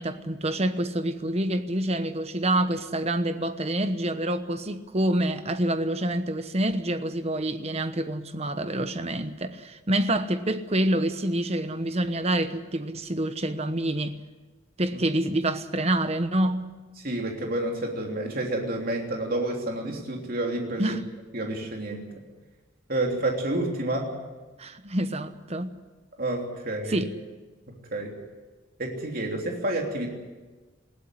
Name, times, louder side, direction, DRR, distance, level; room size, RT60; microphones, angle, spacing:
voice 1, 0.0-14.2 14.8-16.7 20.8-21.0 24.6-25.7 26.9-27.1, right 1 dB, 30° right, 1.1 m, -27 dB
voice 2, 17.0-21.0 21.3-22.1 22.9-24.1 26.2-27.0 27.7-28.1 28.8-30.1, right 1 dB, 45° right, 3.2 m, -29 dB
20.0 x 16.0 x 9.9 m
head